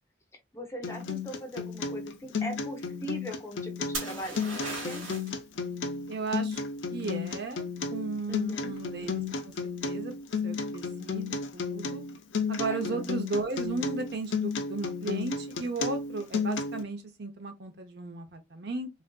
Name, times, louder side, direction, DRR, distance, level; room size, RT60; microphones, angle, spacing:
voice 1, 0.5-5.1 8.3-8.7 12.7-13.1, equal, 15° left, 0.6 m, -40 dB
Acoustic guitar, 0.8-16.8, left 5 dB, 70° left, 0.5 m, -33 dB
sound 1, 3.9-5.4 9.1-9.5, right 2 dB, 85° right, 1.4 m, -37 dB
voice 2, 6.1-6.6 6.9-7.6 7.9-9.5 9.8-10.1 10.4-12.0 12.5-18.9, right 3 dB, 55° right, 0.6 m, -35 dB
3.4 x 2.5 x 2.2 m
head